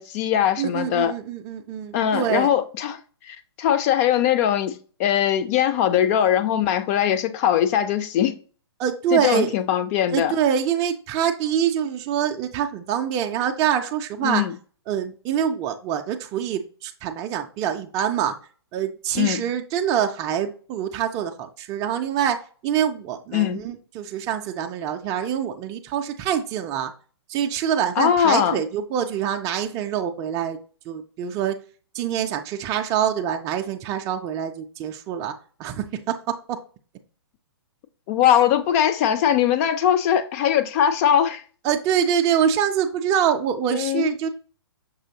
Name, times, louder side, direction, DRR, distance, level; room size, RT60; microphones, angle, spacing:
voice 1, 0.0-1.1 1.9-3.0 3.2-8.4 9.1-10.3 14.2-14.5 19.1-19.4 23.3-23.6 28.0-28.6 38.1-41.4 43.7-44.1, left 10 dB, 35° left, 0.5 m, -21 dB
voice 2, 0.6-2.5 8.8-9.5 10.1-14.4 14.9-18.3 18.7-26.9 27.3-30.6 30.9-31.6 31.9-35.3 35.6-36.6 41.6-44.3, right 9 dB, 25° right, 0.4 m, -25 dB
6.1 x 3.0 x 2.8 m
hypercardioid pair, 135°, 14 cm